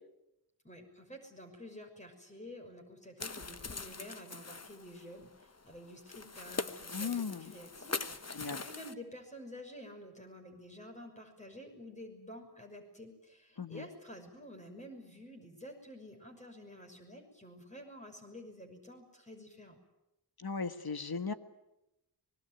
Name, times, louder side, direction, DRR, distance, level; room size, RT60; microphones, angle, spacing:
voice 1, 0.6-19.8, left 1 dB, 15° left, 2 dB, 6.0 m, -50 dB
sound 1, 3.2-8.9, left 3 dB, 40° left, 1.3 m, -42 dB
voice 2, 6.9-7.5 8.3-8.6 13.6-13.8 20.4-21.3, left 5 dB, 65° left, 10 dB, 1.6 m, -37 dB
24.5 x 20.5 x 9.2 m, 0.90 s
cardioid pair, 45°, 40 cm